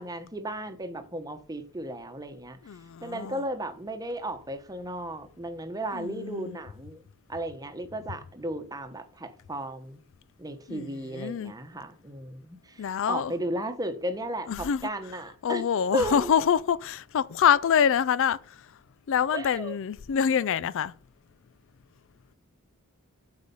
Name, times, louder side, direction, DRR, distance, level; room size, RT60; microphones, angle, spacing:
voice 1, 0.0-2.6 3.0-7.0 7.3-10.0 10.4-15.6 15.9-16.3 19.3-19.8, right 1 dB, 15° right, 1.0 m, -34 dB
voice 2, 2.7-3.4 5.9-6.5 10.7-11.5 12.8-13.3 14.5-14.8 15.4-18.6 19.1-20.9, left 8 dB, 60° left, 0.4 m, -26 dB
8.2 x 4.8 x 6.9 m
head